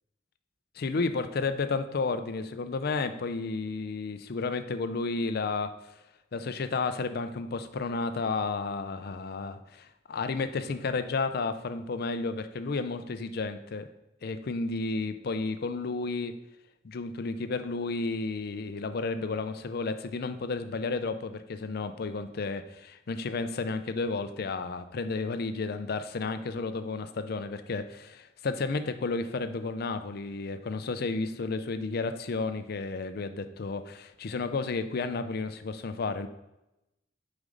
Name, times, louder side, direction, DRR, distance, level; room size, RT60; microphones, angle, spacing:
voice 1, 0.8-5.7 6.3-13.9 14.2-16.4 16.8-36.3, left 3 dB, 55° left, 10 dB, 0.5 m, -32 dB
6.4 x 5.2 x 3.8 m, 0.93 s
head